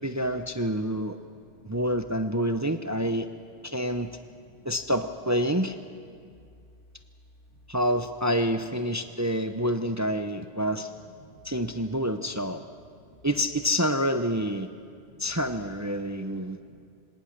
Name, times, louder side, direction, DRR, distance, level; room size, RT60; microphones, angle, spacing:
voice 1, 0.0-1.2 1.6-3.3 3.6-4.1 4.6-5.8 7.7-10.9 11.4-12.6 13.2-14.7 15.2-16.6, equal, 20° right, 8 dB, 0.6 m, -27 dB
voice 2, 1.1-1.8 4.5-4.7 6.2-6.4 9.1-9.2 11.2-11.4 12.6-12.7 13.0-13.2 14.9-15.3 16.3-16.9, left 1 dB, 90° left, 2 dB, 2.5 m, -55 dB
25.5 x 18.5 x 6.6 m, 2.3 s
omnidirectional pair, 1.2 m